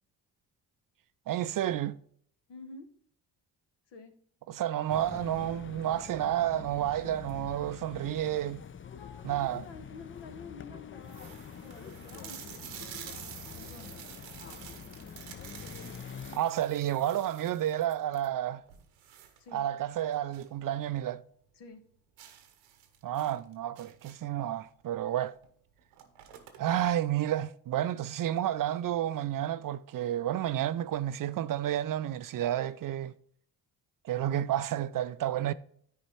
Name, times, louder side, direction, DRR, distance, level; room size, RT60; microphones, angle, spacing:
voice 1, 1.3-2.0 4.5-8.6 9.2-9.7 16.3-18.6 19.5-21.2 23.0-25.3 26.6-33.1 34.0-35.5, right 12 dB, 45° right, 0.5 m, -30 dB
voice 2, 2.5-2.9 3.9-4.1 8.9-11.3 11.6-13.0 13.5-14.1 19.4-19.6 21.5-21.8, left 4 dB, 65° left, 1.3 m, -49 dB
sound 1, 4.9-16.4, left 7 dB, 25° left, 0.5 m, -46 dB
sound 2, 9.4-9.7 10.3-10.4 10.6-10.7 11.0-20.6 20.9-21.0 21.4-21.5 22.2-24.4 25.4-25.5 25.8-26.9, right 10 dB, 90° right, 1.0 m, -49 dB
10.0 x 4.3 x 4.4 m
hypercardioid pair, 50°, 46 cm